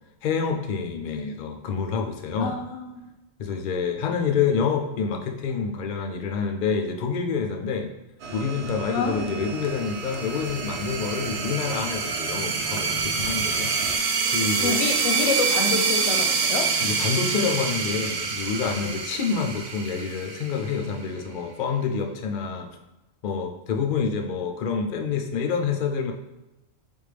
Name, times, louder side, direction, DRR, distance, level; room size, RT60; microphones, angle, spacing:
voice 1, 0.2-2.6 3.4-7.9 8.3-14.0 14.3-15.0 16.8-22.7 23.2-26.1, left 5 dB, 65° left, 3 dB, 0.4 m, -27 dB
voice 2, 2.4-3.0 8.9-9.3 14.6-16.7 18.8-18.9, left 4 dB, 85° left, 5 dB, 1.0 m, -28 dB
sound 1, 8.2-14.0, right 4 dB, 65° right, 0.7 m, -36 dB
sound 2, 9.7-21.0, right 5 dB, 85° right, 1.1 m, -26 dB
4.3 x 3.5 x 3.3 m, 1.0 s
omnidirectional pair, 1.4 m